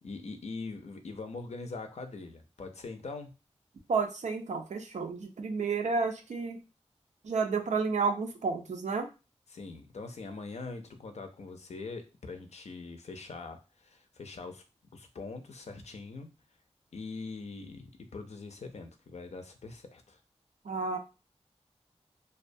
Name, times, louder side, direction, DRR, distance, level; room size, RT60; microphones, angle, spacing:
voice 1, 0.0-3.3 9.5-14.6 14.9-16.3 16.9-20.2, left 3 dB, 70° left, 6 dB, 0.5 m, -42 dB
voice 2, 3.9-6.6 7.2-9.1 20.7-21.0, right 4 dB, 85° right, 5 dB, 0.4 m, -31 dB
2.3 x 2.2 x 2.5 m, 0.30 s
cardioid pair, 45°, 12 cm